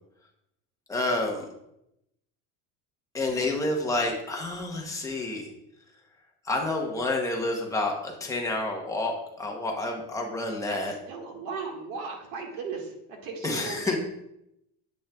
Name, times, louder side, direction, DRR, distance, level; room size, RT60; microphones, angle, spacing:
voice 1, 0.9-1.4 3.1-5.4 6.5-10.9 13.4-14.0, left 2 dB, 10° left, 0 dB, 0.7 m, -29 dB
voice 2, 10.7-14.0, right 4 dB, 65° right, 1 dB, 1.6 m, -37 dB
8.3 x 6.1 x 2.2 m, 0.81 s
cardioid pair, 175°, 38 cm